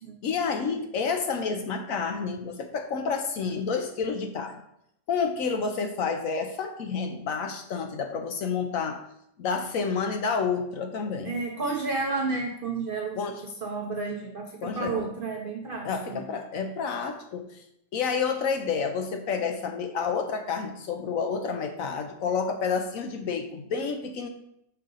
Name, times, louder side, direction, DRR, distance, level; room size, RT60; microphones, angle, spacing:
voice 1, 0.2-4.6 5.1-9.0 9.4-11.3 13.2-13.3 14.6-15.1 15.8-17.5 17.9-24.3, left 5 dB, 65° left, 5 dB, 0.9 m, -29 dB
voice 2, 11.2-13.2 13.6-16.2, right 3 dB, 70° right, 1 dB, 0.5 m, -31 dB
5.6 x 3.7 x 5.3 m, 0.76 s
omnidirectional pair, 1.8 m